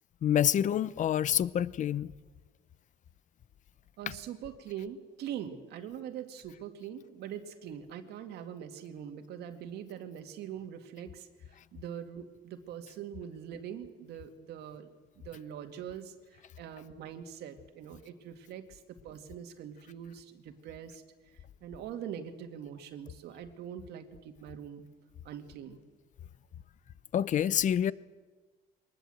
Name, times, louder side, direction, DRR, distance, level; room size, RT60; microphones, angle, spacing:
voice 1, 0.2-2.1 4.1-4.2 27.1-27.9, left 10 dB, 45° left, 0.7 m, -27 dB
voice 2, 4.0-14.9 15.2-16.1 16.6-21.0 21.6-24.8 25.2-25.8, right 9 dB, 75° right, 2.2 m, -43 dB
22.5 x 20.0 x 7.8 m
cardioid pair, 110°, 17 cm